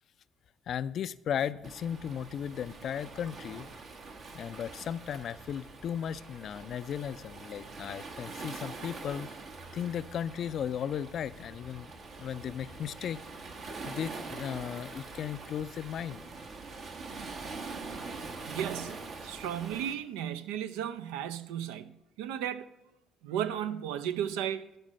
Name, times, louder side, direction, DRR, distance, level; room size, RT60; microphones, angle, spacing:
voice 1, 0.7-3.7 4.3-9.3 9.7-11.9 12.2-13.2 13.8-16.2, left 9 dB, 55° left, 0.3 m, -36 dB
Waves surf, 1.6-19.9, right 3 dB, 55° right, 1.1 m, -44 dB
voice 2, 18.5-22.7 23.2-24.7, right 10 dB, 75° right, 0.4 m, -35 dB
12.0 x 4.4 x 6.3 m
hypercardioid pair, 50°, 0 cm